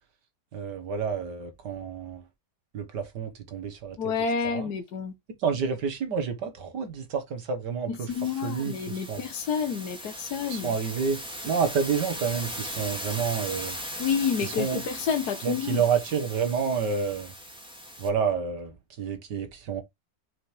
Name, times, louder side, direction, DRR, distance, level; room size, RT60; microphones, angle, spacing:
voice 1, 0.5-2.2 2.7-4.0 4.4-4.7 5.4-8.1 8.4-9.2 10.5-13.8 14.5-14.8 15.4-17.3 18.0-19.8, right 6 dB, 70° right, 1.9 m, -29 dB
voice 2, 4.0-5.1 7.9-10.7 14.0-15.8, left 6 dB, 65° left, 1.4 m, -29 dB
sound 1, 8.1-18.1, equal, 5° right, 2.0 m, -39 dB
6.3 x 5.7 x 3.2 m
omnidirectional pair, 1.9 m